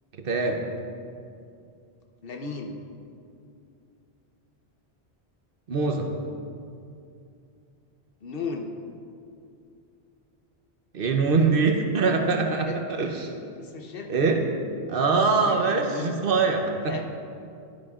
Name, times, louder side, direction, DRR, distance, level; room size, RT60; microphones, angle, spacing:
voice 1, 0.2-0.6 5.7-6.1 10.9-13.3 14.1-14.4 14.9-17.0, right 4 dB, 60° right, 3 dB, 0.9 m, -23 dB
voice 2, 2.2-2.8 8.2-8.7 12.6-12.8 13.6-14.1 15.4-16.1 16.8-17.0, left 4 dB, 60° left, 3 dB, 0.9 m, -35 dB
12.0 x 10.0 x 2.4 m, 2.5 s
omnidirectional pair, 1.1 m